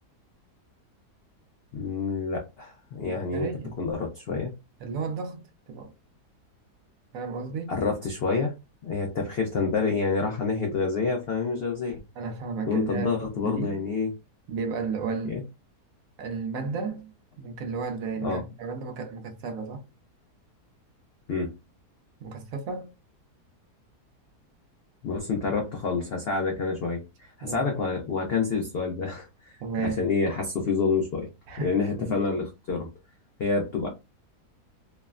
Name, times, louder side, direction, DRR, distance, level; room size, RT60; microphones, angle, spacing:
voice 1, 1.7-3.5 3.8-4.5 7.7-8.5 8.8-12.0 12.7-14.1 15.3-15.4 18.2-18.4 21.3-21.5 25.0-29.5 29.8-31.3 31.6-32.9 33.4-33.9, left 4 dB, 85° left, 0.5 m, -28 dB
voice 2, 3.0-3.8 4.8-5.9 7.1-7.8 12.2-13.8 14.5-15.4 16.2-17.1 17.4-19.8 22.2-22.9 27.4-27.7 29.6-30.0 31.5-32.2, right 4 dB, 70° right, 0.9 m, -33 dB
3.1 x 2.1 x 2.3 m
omnidirectional pair, 1.7 m